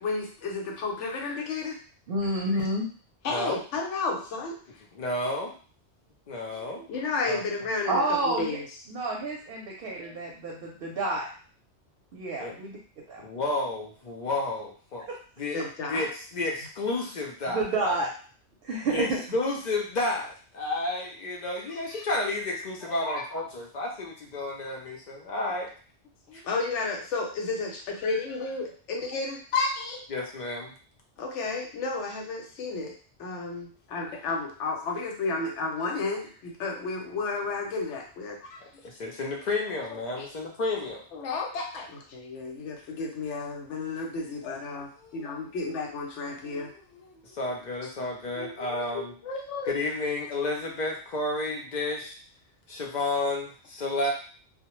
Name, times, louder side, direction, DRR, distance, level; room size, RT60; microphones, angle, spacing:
voice 1, 0.0-1.8 3.2-4.6 6.5-8.7 10.0-10.1 15.5-16.1 21.9-22.0 23.0-23.2 26.3-30.0 31.2-38.6 40.1-40.3 41.1-47.2 48.3-49.7, left 3 dB, 90° left, 1 dB, 0.9 m, -32 dB
voice 2, 2.1-2.9 7.9-8.6 8.9-11.3 12.1-12.8 13.1-13.2 17.5-18.1 18.6-19.2, right 2 dB, 60° right, -2 dB, 0.7 m, -29 dB
voice 3, 4.9-5.5 6.3-6.8 7.2-7.4 12.4-12.5 13.2-15.1 15.4-15.6 15.9-18.0 18.9-25.7 26.3-26.4 30.1-30.7 38.8-41.0 47.2-49.1 49.6-52.2 52.7-54.1, left 2 dB, 55° left, 0 dB, 0.5 m, -31 dB
2.1 x 2.0 x 2.9 m, 0.41 s
omnidirectional pair, 1.2 m